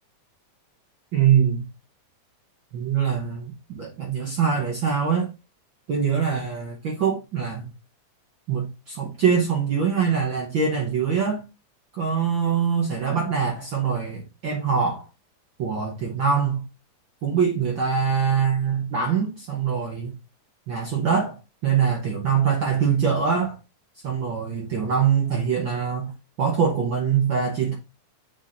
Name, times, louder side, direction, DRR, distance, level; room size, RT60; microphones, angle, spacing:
voice 1, 1.1-1.6 2.7-5.3 5.9-7.7 8.5-11.4 11.9-15.1 15.6-16.6 17.2-20.1 20.7-23.6 24.0-26.1 26.4-27.7, right 6 dB, 55° right, 1.4 m, -23 dB
7.6 x 4.8 x 2.6 m
omnidirectional pair, 3.5 m